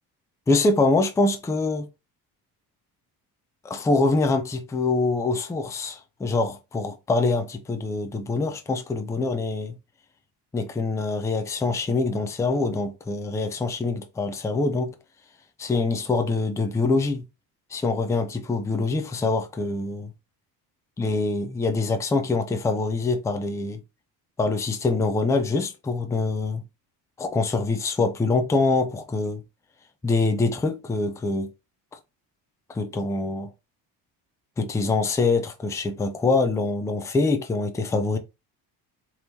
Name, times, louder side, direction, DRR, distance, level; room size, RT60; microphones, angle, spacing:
voice 1, 0.5-1.9 3.6-9.8 10.5-15.0 15.6-17.2 17.7-20.1 21.0-23.8 24.4-26.6 27.2-29.4 30.0-31.5 31.9-32.0 32.7-33.5 34.6-38.2, left 3 dB, 10° left, 0.4 m, -24 dB
4.5 x 3.5 x 2.7 m
cardioid pair, 155°, 40 cm